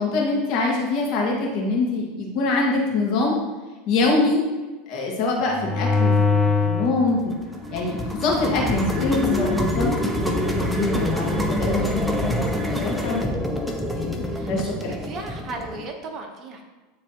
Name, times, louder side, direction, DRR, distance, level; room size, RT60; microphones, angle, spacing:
voice 1, 0.0-3.4 3.9-4.4 4.9-7.3 7.7-13.3 13.9-15.0, left 3 dB, 50° left, -2 dB, 1.6 m, -24 dB
sound 1, 5.5-6.9 7.3-15.9, left 2 dB, ahead, 0.7 m, -25 dB
voice 2, 14.3-16.6, right 3 dB, 40° right, 3 dB, 1.0 m, -36 dB
9.8 x 3.3 x 2.9 m, 1.2 s
supercardioid pair, 125°, 0 cm